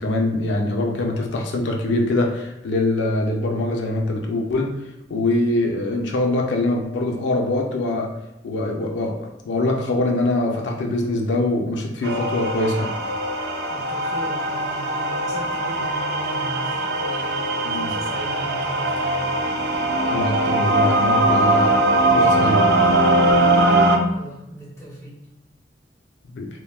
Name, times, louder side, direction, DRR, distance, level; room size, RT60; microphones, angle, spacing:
voice 1, 0.0-4.7 5.1-8.1 8.4-12.9 17.6-18.0 20.0-21.7 22.1-22.7 26.3-26.5, left 2 dB, 90° left, 1 dB, 0.4 m, -23 dB
sound 1, 12.0-24.0, right 1 dB, 65° right, 0.3 m, -20 dB
voice 2, 13.7-19.3 24.1-25.2, right 1 dB, 15° left, -7 dB, 1.1 m, -37 dB
3.5 x 2.2 x 2.2 m, 0.88 s
head